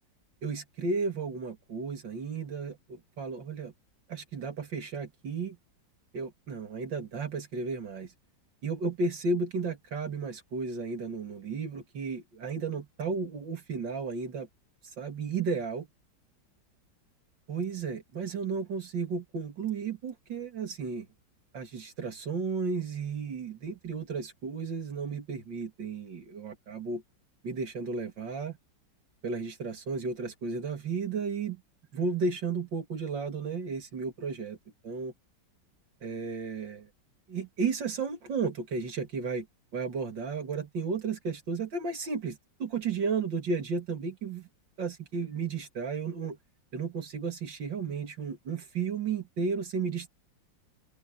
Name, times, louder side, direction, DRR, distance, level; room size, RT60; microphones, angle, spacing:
voice 1, 0.4-3.7 4.1-5.6 6.1-8.1 8.6-14.5 15.0-15.9 17.5-21.1 21.5-27.0 27.4-28.6 29.2-31.6 31.9-34.6 34.8-35.1 36.0-36.9 37.3-39.5 39.7-44.5 44.8-46.4 46.7-50.1, right 4 dB, 75° right, 3.1 m, -33 dB
omnidirectional pair, 2.0 m